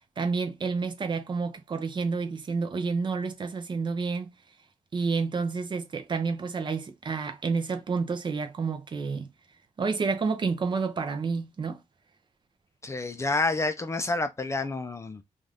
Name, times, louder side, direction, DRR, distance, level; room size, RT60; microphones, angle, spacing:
voice 1, 0.2-4.3 4.9-9.3 9.8-11.8, right 4 dB, 35° right, 0.5 m, -29 dB
voice 2, 12.8-15.2, left 3 dB, 20° left, 0.4 m, -29 dB
2.6 x 2.4 x 3.3 m
wide cardioid pair, 130°, 13 cm